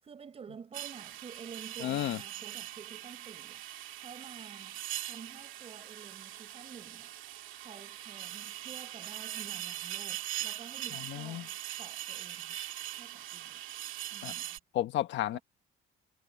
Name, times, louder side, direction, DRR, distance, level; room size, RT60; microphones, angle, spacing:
voice 1, 0.0-3.6 3.9-7.1 7.6-12.6 12.9-13.6 14.1-14.6 15.3-15.4, right 6 dB, 30° right, 6.2 m, -50 dB
sound 1, 0.7-14.6, right 13 dB, 70° right, 2.2 m, -41 dB
voice 2, 1.8-2.2 11.1-11.4 14.2-14.3 14.7-15.4, left 13 dB, 60° left, 1.3 m, -32 dB
cardioid pair, 175°, 21 cm